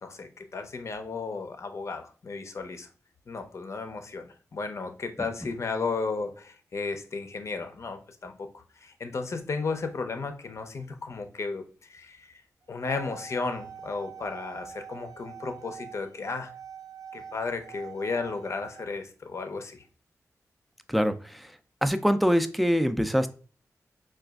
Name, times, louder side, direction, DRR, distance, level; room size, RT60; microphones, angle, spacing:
voice 1, 0.0-2.9 3.3-12.4 12.7-16.5 17.1-19.8, left 4 dB, 55° left, 7 dB, 0.6 m, -34 dB
sound 1, 12.6-18.8, right 7 dB, 70° right, 0.8 m, -45 dB
voice 2, 20.9-21.5 21.8-23.3, equal, ahead, 9 dB, 0.3 m, -24 dB
4.9 x 2.3 x 2.3 m, 0.39 s
wide cardioid pair, 80°, 6 cm